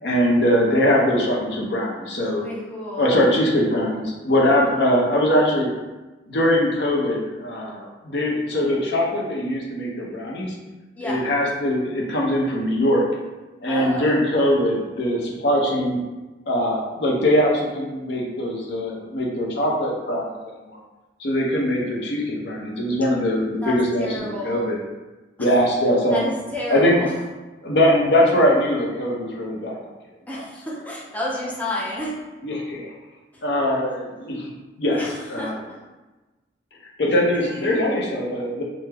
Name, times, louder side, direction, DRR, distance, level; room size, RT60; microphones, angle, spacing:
voice 1, 0.0-2.4 3.0-5.7 6.3-10.5 11.0-13.1 13.6-16.0 16.5-20.2 20.7-20.8 21.2-24.8 25.4-26.3 26.7-27.0 27.6-29.8 30.3-30.4 32.4-32.9 33.4-34.5 34.8-35.0 35.3-35.6 37.0-38.6, equal, 70° left, -2 dB, 0.6 m, -21 dB
voice 2, 2.4-3.2 11.0-11.3 13.7-14.2 23.6-24.7 25.4-25.5 26.1-27.2 30.3-32.3 34.9-35.8 37.4-37.9, left 1 dB, 10° left, -5 dB, 0.4 m, -31 dB
3.3 x 2.0 x 3.3 m, 1.2 s
head